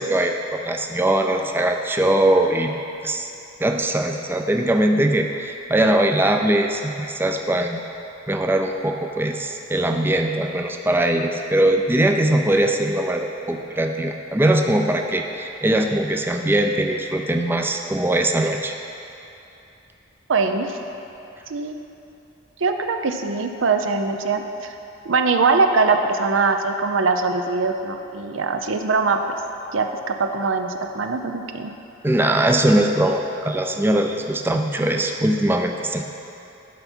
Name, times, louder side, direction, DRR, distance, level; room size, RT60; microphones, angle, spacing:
voice 1, 0.0-2.7 3.0-3.3 3.6-7.8 8.3-18.7 32.0-36.0, right 1 dB, 10° right, 3 dB, 0.4 m, -21 dB
voice 2, 20.3-20.8 21.5-21.8 22.6-24.7 25.0-29.2 29.7-31.7, right 4 dB, 85° right, 6 dB, 0.6 m, -22 dB
11.5 x 5.8 x 4.4 m, 2.8 s
head